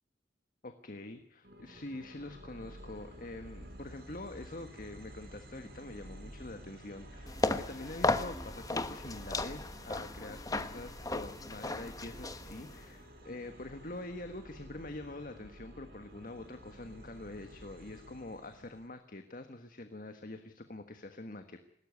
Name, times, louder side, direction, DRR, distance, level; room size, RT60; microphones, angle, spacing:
voice 1, 0.6-21.6, left 2 dB, 45° left, 8 dB, 1.5 m, -45 dB
sound 1, 1.4-18.9, right 1 dB, 55° right, 4.8 m, -51 dB
sound 2, 7.3-12.9, left 2 dB, 20° left, 1.1 m, -35 dB
20.5 x 17.5 x 9.7 m, 0.75 s
head